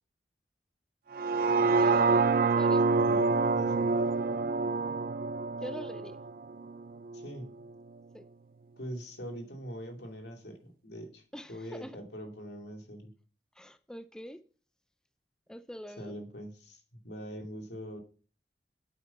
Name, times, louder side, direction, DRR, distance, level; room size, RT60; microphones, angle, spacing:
sound 1, 1.1-7.3 7.7-7.8, right 4 dB, 55° right, 0.5 m, -27 dB
voice 1, 1.7-2.1 2.4-2.8 5.6-6.2 8.1-8.2 11.3-12.0 13.6-14.4 15.5-16.2, equal, 5° left, 0.5 m, -44 dB
voice 2, 2.9-3.9 7.1-7.5 8.8-11.2 11.5-13.1 16.0-18.0, equal, 75° left, 2.6 m, -43 dB
9.5 x 8.4 x 5.8 m
head